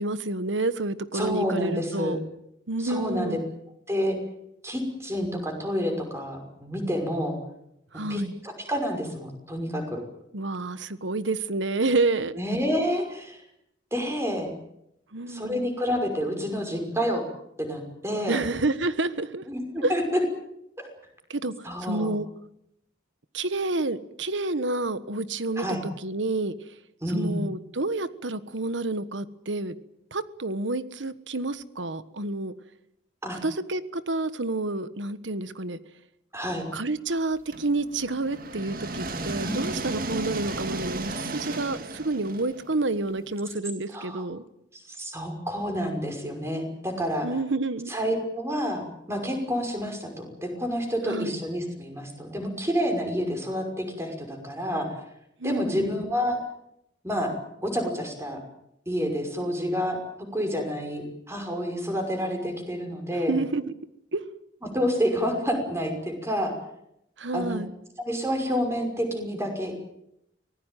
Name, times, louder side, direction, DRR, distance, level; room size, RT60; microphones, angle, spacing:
voice 1, 0.0-2.2 2.7-3.4 7.9-8.3 10.3-12.4 15.1-15.6 18.3-19.4 19.8-19.9 21.3-22.3 23.3-26.5 27.1-29.7 30.1-32.5 33.3-35.8 36.7-44.4 47.2-47.9 51.1-51.4 55.4-56.0 63.1-63.6 64.1-64.2 67.2-67.7, right 2 dB, 90° right, 14 dB, 1.4 m, -29 dB
voice 2, 1.1-2.2 2.8-3.4 3.9-4.2 4.6-7.4 8.1-10.0 12.4-13.4 13.9-14.5 15.3-17.2 17.6-18.4 19.5-20.0 20.8-20.9 21.6-22.1 25.6-25.8 27.0-27.4 33.2-33.4 36.3-36.6 39.4-39.6 43.9-44.3 44.7-47.3 47.9-54.9 55.4-56.4 57.0-57.3 57.6-58.4 58.9-60.0 60.3-63.3 64.6-66.5 67.3-67.6 68.0-69.7, equal, 15° right, 4 dB, 5.7 m, -29 dB
sound 1, 37.5-43.4, right 2 dB, 50° right, 2.2 m, -34 dB
25.0 x 18.5 x 9.2 m, 0.80 s
head